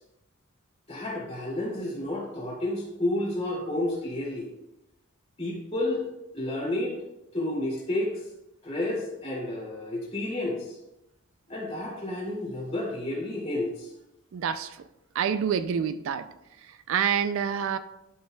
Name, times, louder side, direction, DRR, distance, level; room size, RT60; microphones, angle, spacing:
voice 1, 0.9-4.5 5.4-6.0 6.3-6.9 7.3-8.2 8.6-10.8 11.5-13.9, left 1 dB, 30° left, 2.3 m, -31 dB
voice 2, 14.3-14.8 15.2-16.3 16.9-17.8, right 7 dB, 65° right, 0.3 m, -27 dB
11.0 x 5.5 x 2.2 m
head